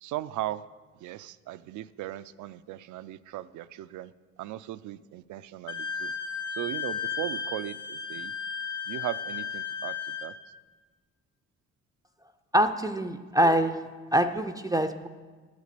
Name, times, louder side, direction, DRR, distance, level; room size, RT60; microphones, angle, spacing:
voice 1, 0.0-0.6 1.0-4.1 4.4-6.1 6.5-8.3 8.9-10.3, right 14 dB, 75° right, 16 dB, 0.5 m, -37 dB
Wind instrument woodwind instrument, 5.7-10.3, left 6 dB, 85° left, 0.8 m, -34 dB
voice 2, 12.5-13.8 14.1-15.1, right 1 dB, 10° right, 9 dB, 0.4 m, -24 dB
8.4 x 8.2 x 6.7 m, 1.4 s
cardioid pair, 90°, 30 cm